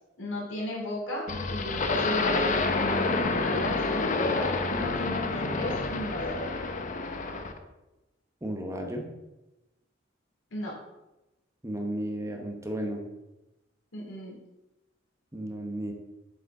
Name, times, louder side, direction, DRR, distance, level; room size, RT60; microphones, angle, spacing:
voice 1, 0.2-6.5 10.5-10.8 13.9-14.3, left 1 dB, 80° left, -4 dB, 2.6 m, -35 dB
sound 1, 1.3-7.6, left 3 dB, 40° left, 0.6 m, -28 dB
voice 2, 8.4-9.1 11.6-13.1 15.3-15.9, right 1 dB, 15° right, 2 dB, 0.8 m, -33 dB
6.9 x 4.9 x 4.6 m, 1.0 s
head